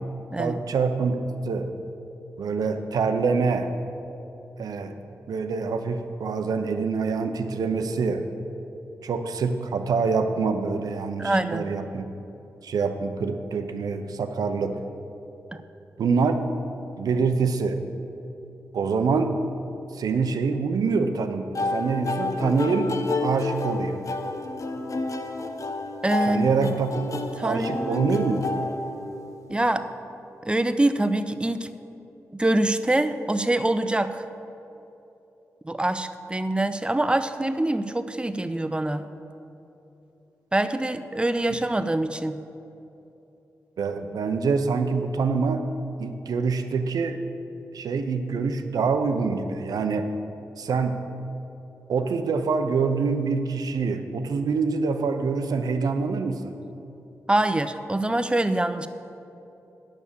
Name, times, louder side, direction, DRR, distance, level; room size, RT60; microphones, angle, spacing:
voice 1, 0.4-1.2 1.4-1.7 2.4-3.7 4.6-5.0 5.3-8.3 9.0-12.0 12.6-14.8 16.0-16.4 17.0-17.8 18.7-19.3 19.9-22.9 23.2-24.0 26.2-28.4 43.8-45.6 46.0-47.2 47.7-50.1 50.6-51.0 51.9-56.5, right 4 dB, 80° right, 7 dB, 0.7 m, -25 dB
voice 2, 11.2-11.7 26.0-26.7 27.4-28.0 29.5-29.9 30.4-31.7 32.3-34.2 35.6-39.0 40.5-42.4 57.3-58.9, right 1 dB, 15° right, 10 dB, 0.6 m, -24 dB
sound 1, 21.5-29.5, left 3 dB, 55° left, 0.8 m, -30 dB
9.5 x 6.5 x 7.0 m, 2.9 s
cardioid pair, 45°, 6 cm